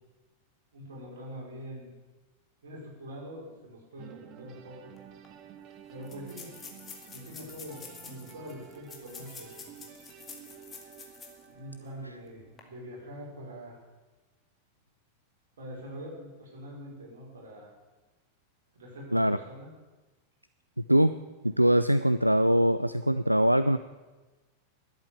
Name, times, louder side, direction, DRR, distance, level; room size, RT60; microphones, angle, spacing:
voice 1, 0.7-1.9 2.6-4.8 5.9-6.5 7.1-9.5 11.5-13.8 15.6-17.7 18.7-19.7, equal, 65° right, -3 dB, 5.0 m, -44 dB
sound 1, 4.0-13.0, right 10 dB, 40° right, 1.2 m, -51 dB
sound 2, 5.0-5.1 5.2-5.3 6.0-11.5 11.9-12.0 12.4-12.6, left 5 dB, 25° left, 2.2 m, -48 dB
voice 2, 20.8-21.1 21.4-23.8, equal, 90° right, 12 dB, 0.3 m, -23 dB
11.5 x 8.6 x 8.2 m, 1.2 s
figure-of-eight pair, 90°, 0 cm